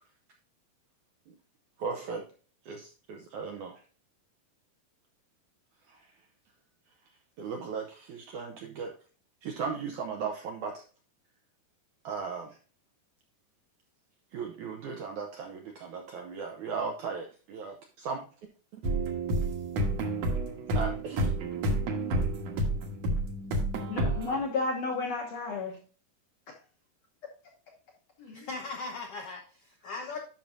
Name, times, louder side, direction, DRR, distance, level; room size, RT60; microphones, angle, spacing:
voice 1, 1.8-2.3 2.6-3.8 5.9-6.1 7.4-8.9 9.4-10.8 12.0-12.6 14.3-18.3 20.7-21.3, right 5 dB, 80° right, 3 dB, 1.7 m, -37 dB
sound 1, 18.8-24.4, right 1 dB, 60° right, 2.0 m, -30 dB
voice 2, 23.9-25.8 28.2-28.5, left 3 dB, 65° left, -1 dB, 1.7 m, -32 dB
voice 3, 28.3-30.2, left 3 dB, 80° left, 2 dB, 1.3 m, -39 dB
10.5 x 5.9 x 2.6 m, 0.37 s
omnidirectional pair, 4.5 m